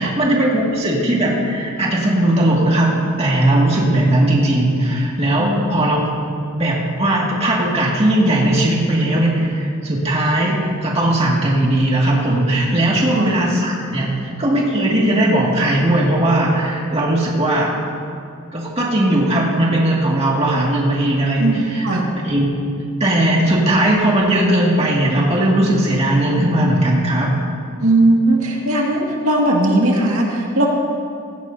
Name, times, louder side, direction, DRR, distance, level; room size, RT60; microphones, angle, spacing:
voice 1, 0.0-2.9 3.2-6.0 6.5-17.7 18.5-21.9 22.2-22.5 23.0-27.3, right 1 dB, 30° right, -4 dB, 2.1 m, -18 dB
voice 2, 21.4-22.1 27.8-30.7, right 1 dB, 80° right, -2 dB, 2.1 m, -18 dB
17.5 x 16.0 x 2.7 m, 2.4 s
head